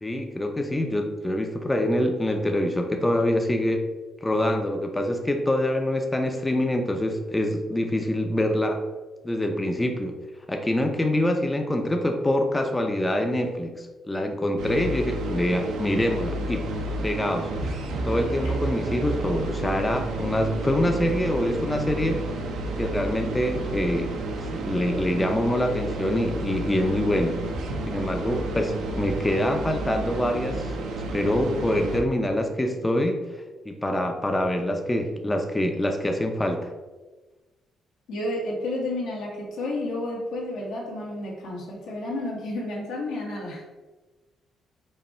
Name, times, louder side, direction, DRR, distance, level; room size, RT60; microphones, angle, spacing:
voice 1, 0.0-3.9 4.2-8.8 9.2-10.1 10.5-16.7 17.0-17.5 18.0-22.2 22.8-24.2 24.5-27.4 27.9-30.7 31.1-33.2 33.7-36.7, left 1 dB, 15° left, 4 dB, 0.5 m, -25 dB
sound 1, 14.6-32.0, right 2 dB, 85° right, 0.7 m, -31 dB
voice 2, 38.1-43.6, left 1 dB, 85° left, -3 dB, 1.4 m, -31 dB
5.3 x 2.3 x 4.1 m, 1.2 s
cardioid pair, 90°, 0 cm